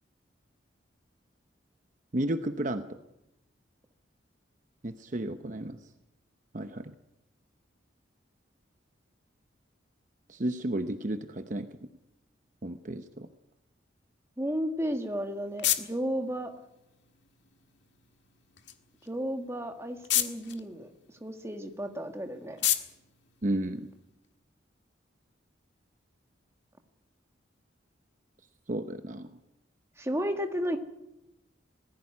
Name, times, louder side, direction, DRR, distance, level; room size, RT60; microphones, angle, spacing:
voice 1, 2.1-3.0 4.8-5.8 6.5-6.9 10.3-11.7 12.6-13.3 23.4-23.9 28.7-29.3, right 1 dB, 40° right, 8 dB, 0.8 m, -32 dB
voice 2, 14.4-16.5 19.0-22.6 30.0-30.8, equal, 15° right, 6 dB, 1.6 m, -33 dB
sound 1, 14.8-24.3, left 12 dB, 70° left, 1.7 m, -36 dB
19.0 x 15.5 x 9.7 m, 0.88 s
head